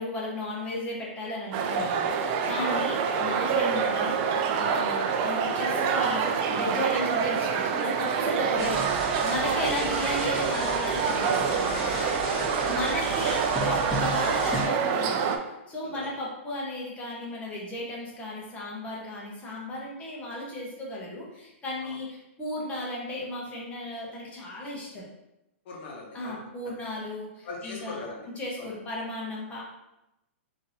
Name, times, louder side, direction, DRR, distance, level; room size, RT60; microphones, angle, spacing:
voice 1, 0.0-11.7 12.6-25.1 26.1-28.0 28.4-29.6, left 1 dB, 20° left, -4 dB, 0.9 m, -35 dB
sound 1, 1.5-15.4, right 6 dB, 35° right, 0.4 m, -26 dB
voice 2, 2.6-2.9 11.5-13.0 15.9-16.1 21.8-22.0 25.6-26.5 27.4-28.2 28.6-28.7, left 3 dB, 50° left, -1 dB, 1.0 m, -39 dB
sound 2, 8.6-14.7, equal, ahead, 1.4 m, -35 dB
3.7 x 2.7 x 2.7 m, 0.91 s
hypercardioid pair, 135°, 7 cm